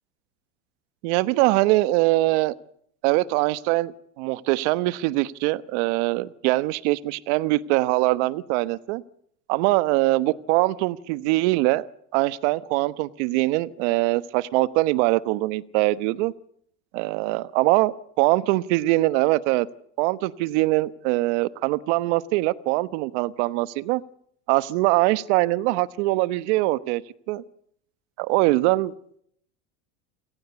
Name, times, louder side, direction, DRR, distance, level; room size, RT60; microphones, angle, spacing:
voice 1, 1.0-2.5 3.0-9.0 9.5-11.9 12.1-16.3 16.9-17.9 18.2-19.7 20.0-24.0 24.5-27.0 27.3-27.4 28.2-28.9, right 19 dB, 70° right, 15 dB, 1.2 m, -22 dB
28.5 x 18.5 x 8.2 m, 0.72 s
hypercardioid pair, 95°, 36 cm